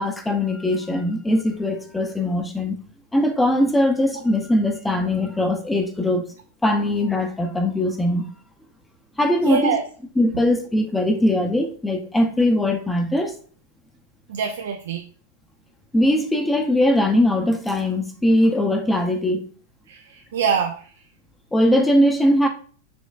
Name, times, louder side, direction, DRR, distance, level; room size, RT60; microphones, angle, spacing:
voice 1, 0.0-2.8 3.1-6.2 6.6-8.3 9.2-9.8 10.2-13.3 15.9-19.5 21.5-22.5, left 1 dB, 10° left, 0.6 m, -20 dB
voice 2, 9.4-9.8 14.3-15.0 19.9-20.9, right 6 dB, 75° right, 0.4 m, -24 dB
5.2 x 3.0 x 2.4 m
hypercardioid pair, 105°, 0 cm